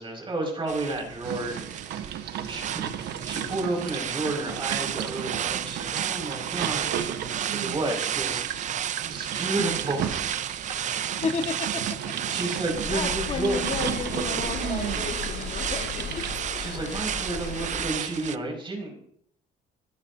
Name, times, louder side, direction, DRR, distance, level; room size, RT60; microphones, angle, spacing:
voice 1, 0.0-2.2 2.5-7.1 7.5-8.4 9.1-10.2 12.3-13.6 16.6-19.0, right 2 dB, 30° right, 1 dB, 5.8 m, -31 dB
sound 1, 0.7-18.4, right 10 dB, 45° right, 0.6 m, -32 dB
sound 2, 1.2-16.4, right 9 dB, 70° right, 1.3 m, -35 dB
voice 2, 11.2-12.2 12.9-16.3 16.5-16.6, left 5 dB, 40° left, 4 dB, 1.7 m, -33 dB
Rain on Windows Interior A, 12.6-17.9, left 5 dB, 85° left, 6.7 m, -36 dB
25.0 x 13.0 x 2.8 m, 0.65 s
cardioid pair, 110°, 17 cm